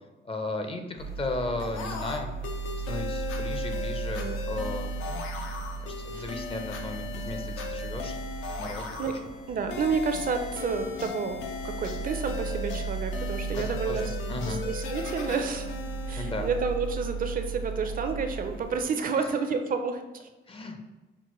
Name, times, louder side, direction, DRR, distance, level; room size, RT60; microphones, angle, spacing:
voice 1, 0.2-2.3 2.8-5.2 5.8-8.1 8.6-9.2 13.5-14.6 16.2-16.5 19.1-19.3 20.5-20.8, left 2 dB, 30° left, 5 dB, 0.5 m, -35 dB
sound 1, 1.0-18.8, right 4 dB, 55° left, 1.1 m, -36 dB
sound 2, 1.6-17.1, left 5 dB, 80° left, 0.6 m, -38 dB
voice 2, 9.5-14.2 14.5-15.7 16.1-20.3, right 5 dB, 45° right, 7 dB, 0.4 m, -30 dB
5.9 x 2.1 x 3.0 m, 1.2 s
cardioid pair, 90°, 20 cm